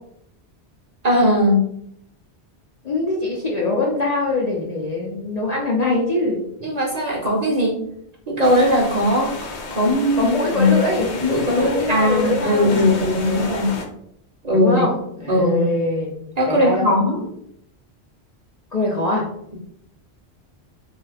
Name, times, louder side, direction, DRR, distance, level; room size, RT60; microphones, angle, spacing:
voice 1, 1.0-1.7 6.6-7.8 8.3-9.3 9.7-10.7 11.2-13.8 14.4-14.7 15.3-15.7 16.4-17.2, left 1 dB, 45° right, -2 dB, 0.7 m, -19 dB
voice 2, 2.8-6.4 10.2-11.2 11.6-13.0 14.5-16.1 16.5-16.9 18.7-19.3, left 2 dB, 50° left, -3 dB, 0.5 m, -23 dB
sound 1, 8.4-13.9, left 3 dB, 80° left, 0.9 m, -32 dB
2.7 x 2.3 x 3.2 m, 0.73 s
omnidirectional pair, 1.1 m